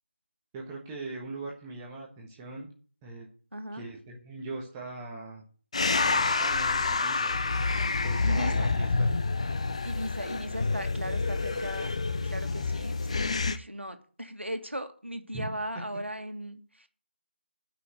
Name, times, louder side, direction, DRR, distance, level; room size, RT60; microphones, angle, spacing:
voice 1, 0.5-2.7 3.0-3.3 3.7-5.4 6.0-7.4 8.0-9.1 11.5-11.6 15.3-15.5, right 2 dB, 10° right, -2 dB, 1.2 m, -40 dB
voice 2, 3.5-3.9 8.2-8.7 9.8-11.9 12.2-16.9, equal, 90° right, 7 dB, 1.8 m, -37 dB
sound 1, 5.7-13.6, left 3 dB, 30° left, 0.6 m, -28 dB
9.8 x 5.9 x 8.0 m, 0.43 s
figure-of-eight pair, 160°, 6 cm